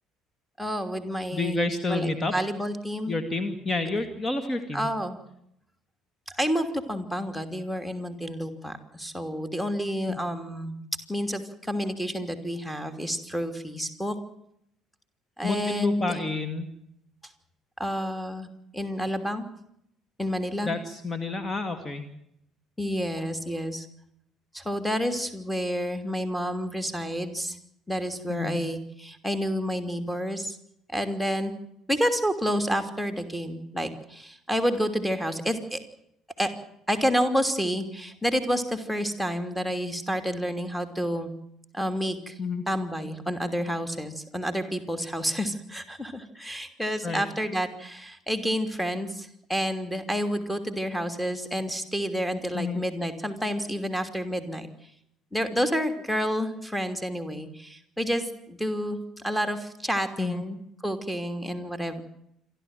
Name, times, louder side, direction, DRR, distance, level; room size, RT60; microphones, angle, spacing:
voice 1, 0.6-1.6 1.9-3.1 4.7-5.2 6.3-10.7 11.1-14.1 15.4-16.2 17.8-18.5 18.7-19.5 20.2-20.7 22.8-23.9 24.5-27.6 27.9-30.6 30.9-31.5 31.9-35.8 36.4-36.5 36.9-41.3 41.7-42.4 42.7-54.7 55.3-59.0 59.2-62.0, equal, 5° left, 6 dB, 3.0 m, -29 dB
voice 2, 1.3-2.3 3.1-4.9 10.1-10.2 15.4-16.7 20.6-22.1 28.3-28.6 42.4-42.6 47.0-47.2 52.5-52.8 60.2-60.4, left 3 dB, 25° left, 9 dB, 2.2 m, -29 dB
27.5 x 12.5 x 9.1 m, 0.76 s
figure-of-eight pair, 55°, 0 cm